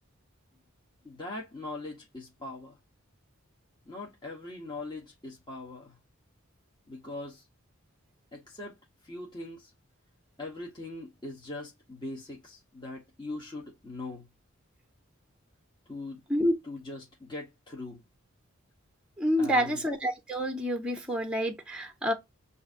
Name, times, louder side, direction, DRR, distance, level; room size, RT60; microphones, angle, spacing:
voice 1, 1.0-2.8 3.9-6.0 6.9-7.4 8.3-9.7 10.4-14.3 15.9-16.2 16.6-18.0 19.4-19.8, left 2 dB, 20° left, 1.1 m, -41 dB
voice 2, 19.2-22.1, equal, 5° right, 0.7 m, -28 dB
7.6 x 2.6 x 2.5 m
head